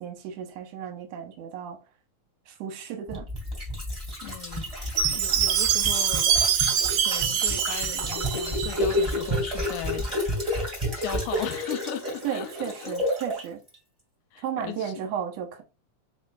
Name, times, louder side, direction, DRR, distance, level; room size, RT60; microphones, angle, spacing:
voice 1, 0.0-1.8 2.5-3.3 12.2-13.6 14.4-15.6, right 8 dB, 65° right, 1.8 m, -34 dB
sound 1, 3.1-13.4 13.7-13.8, equal, 15° right, 1.4 m, -30 dB
voice 2, 4.2-4.7 5.1-6.3 7.0-10.0 10.9-12.9 14.3-14.9, left 11 dB, 80° left, 2.0 m, -37 dB
Chime, 5.0-9.1, right 8 dB, 85° right, 2.2 m, -25 dB
4.4 x 4.3 x 2.3 m
omnidirectional pair, 3.8 m